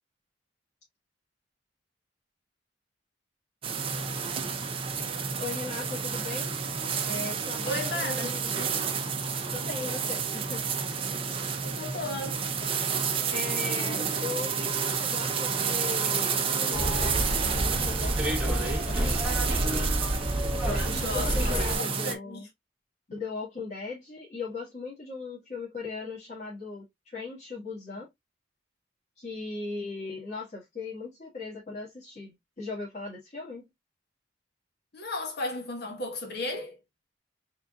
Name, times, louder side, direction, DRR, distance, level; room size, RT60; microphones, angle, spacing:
sound 1, 3.6-22.2, right 6 dB, 30° right, 0.7 m, -30 dB
voice 1, 5.2-6.6 7.1-8.5 9.5-10.6 13.3-19.2 20.6-22.5 23.1-28.1 29.2-33.7, left 4 dB, 40° left, 1.8 m, -38 dB
voice 2, 7.6-8.8 11.6-12.4 21.0-22.4 34.9-36.8, left 2 dB, 60° left, 1.4 m, -35 dB
Bus, 16.7-21.8, right 1 dB, 5° right, 1.1 m, -28 dB
4.3 x 3.7 x 2.4 m
head